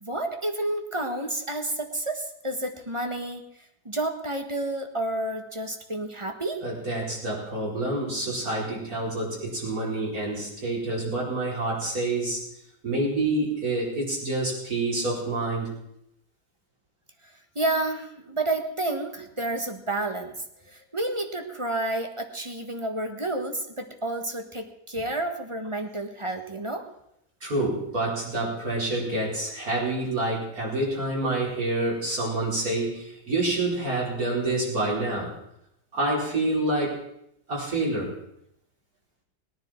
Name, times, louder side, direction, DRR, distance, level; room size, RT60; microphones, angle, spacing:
voice 1, 0.0-3.4 3.8-6.6 17.5-20.3 20.9-26.9, right 2 dB, 20° right, 5 dB, 1.3 m, -30 dB
voice 2, 6.6-12.4 12.8-15.7 27.4-35.3 35.9-37.0 37.5-38.1, right 2 dB, 60° right, -4 dB, 5.3 m, -27 dB
20.5 x 10.0 x 4.5 m, 0.78 s
omnidirectional pair, 1.8 m